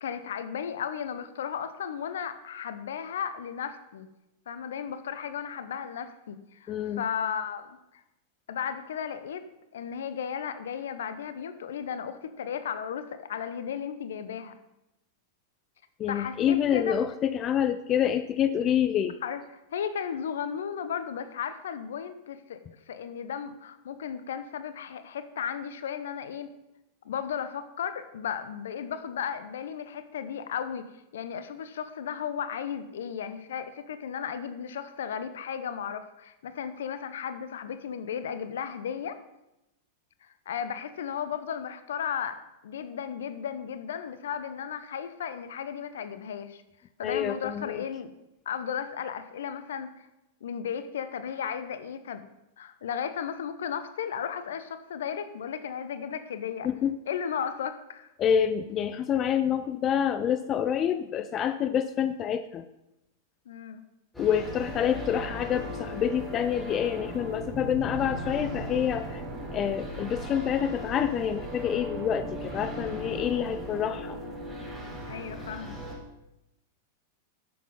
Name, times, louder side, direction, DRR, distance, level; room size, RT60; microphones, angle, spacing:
voice 1, 0.0-4.1 4.5-7.8 8.5-9.5 9.7-14.6 16.1-17.0 19.2-26.5 27.0-30.9 31.1-39.2 40.5-46.6 47.0-48.1 48.5-49.9 50.4-52.2 52.6-56.7 57.1-58.1 63.5-63.8 75.0-75.8, left 8 dB, 70° left, 11 dB, 0.9 m, -35 dB
voice 2, 6.7-7.0 16.0-19.2 47.0-47.8 56.6-57.0 58.2-62.6 64.2-69.2 69.5-74.2, left 9 dB, 35° left, 12 dB, 0.5 m, -27 dB
sound 1, 64.1-75.9, equal, 5° left, 4.3 m, -37 dB
9.8 x 7.2 x 5.3 m, 0.91 s
figure-of-eight pair, 95°, 0 cm